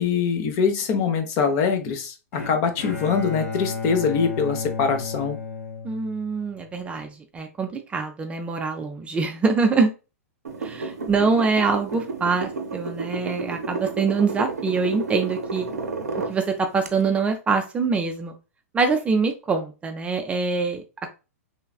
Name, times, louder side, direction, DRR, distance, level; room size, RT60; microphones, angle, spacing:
voice 1, 0.0-5.4, left 6 dB, 40° left, 7 dB, 0.6 m, -23 dB
Bowed string instrument, 2.3-6.5, left 4 dB, 70° left, 1.2 m, -33 dB
voice 2, 5.8-9.9 10.6-15.7 16.3-18.3 18.7-20.8, right 4 dB, 15° right, 5 dB, 0.3 m, -24 dB
sound 1, 10.4-16.4 16.8-16.9, right 4 dB, 90° right, 0.5 m, -31 dB
3.1 x 2.3 x 2.3 m, 0.30 s
hypercardioid pair, 110°, 8 cm